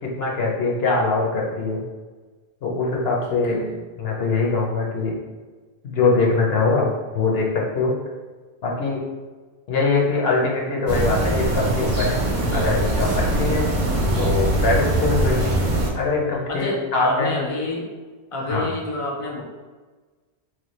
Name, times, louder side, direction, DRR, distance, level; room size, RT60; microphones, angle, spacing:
voice 1, 0.0-1.8 2.6-3.6 4.0-5.2 5.8-6.9 7.1-7.9 8.6-9.0 9.7-12.2 12.5-13.7 14.1-15.5 15.9-17.4 18.5-18.7, left 3 dB, 70° left, -2 dB, 0.8 m, -22 dB
voice 2, 3.5-3.8 13.8-14.3 16.5-17.9 18.3-19.4, left 2 dB, 40° left, -2 dB, 0.5 m, -29 dB
sound 1, 10.9-15.9, right 1 dB, 55° right, 0.7 m, -22 dB
3.1 x 2.3 x 3.0 m, 1.3 s
omnidirectional pair, 1.1 m